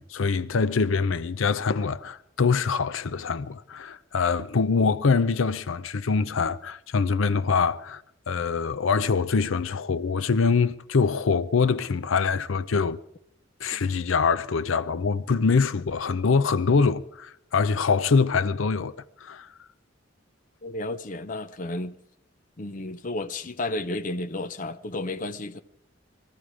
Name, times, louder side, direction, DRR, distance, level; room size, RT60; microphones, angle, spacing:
voice 1, 0.0-8.0 8.3-13.0 13.6-18.9 19.2-19.5, left 5 dB, 85° left, 0.6 m, -24 dB
voice 2, 20.6-22.0 22.6-25.6, left 2 dB, 40° left, 0.6 m, -32 dB
21.0 x 14.0 x 4.9 m
head